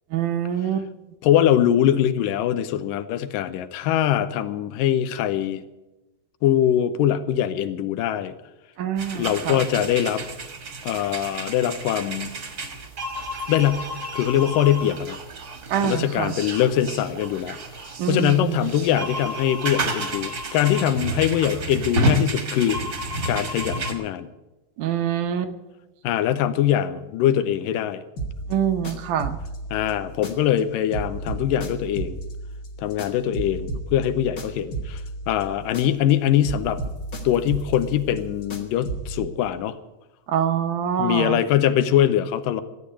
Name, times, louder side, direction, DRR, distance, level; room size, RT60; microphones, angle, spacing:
voice 1, 0.1-0.9 8.8-9.7 15.7-16.4 18.0-18.7 24.8-25.5 28.5-29.4 40.3-41.4, right 9 dB, 75° right, 9 dB, 2.3 m, -25 dB
voice 2, 1.2-5.6 6.4-8.3 9.1-10.2 10.8-12.3 13.5-13.9 14.1-15.2 15.8-22.8 23.3-24.3 26.0-28.0 29.7-32.2 32.8-35.0 35.3-36.8 37.2-39.8 41.0-42.6, left 11 dB, 90° left, 12 dB, 2.4 m, -22 dB
sound 1, 9.0-23.9, right 1 dB, 40° right, 1.5 m, -30 dB
sound 2, 28.2-30.6 30.9-36.1 36.4-39.2, right 2 dB, 45° left, 1.0 m, -34 dB
13.5 x 8.6 x 9.8 m, 1.0 s
omnidirectional pair, 3.8 m